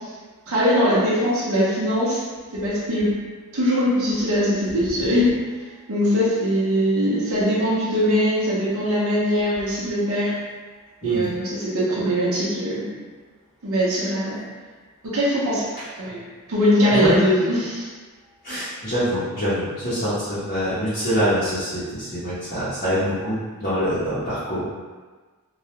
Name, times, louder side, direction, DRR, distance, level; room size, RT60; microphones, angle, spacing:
voice 1, 0.5-2.2 2.5-3.2 3.5-5.3 5.9-10.4 11.0-12.9 13.6-14.4 15.1-15.7 16.0-16.2 16.5-17.9, equal, 65° right, -8 dB, 0.7 m, -21 dB
voice 2, 18.4-24.6, equal, 40° left, -13 dB, 0.7 m, -25 dB
2.3 x 2.0 x 2.9 m, 1.4 s
head